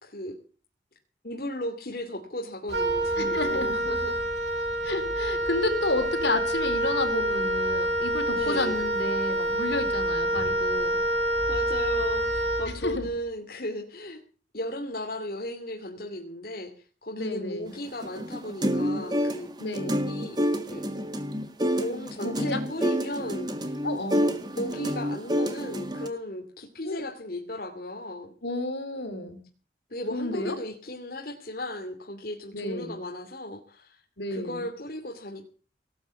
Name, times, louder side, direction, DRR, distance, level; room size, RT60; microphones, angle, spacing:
voice 1, 0.0-0.3 1.2-4.2 8.3-8.8 11.5-14.2 14.5-19.5 19.8-20.4 20.7-20.8 21.7-23.8 24.6-28.3 29.9-34.0 34.3-35.5, left 1 dB, 50° left, 3 dB, 2.6 m, -36 dB
Wind instrument woodwind instrument, 2.7-13.1, right 1 dB, 75° right, 5.4 m, -27 dB
voice 2, 3.2-3.8 4.8-11.0 12.8-13.1 17.1-17.8 19.6-20.1 22.1-22.6 23.8-24.4 26.8-27.0 28.4-29.4 30.1-30.6 32.5-33.0 34.2-34.7, left 2 dB, 75° left, 7 dB, 4.2 m, -31 dB
sound 1, 17.9-26.1, equal, 25° right, 1.7 m, -28 dB
18.5 x 8.9 x 8.3 m, 0.41 s
head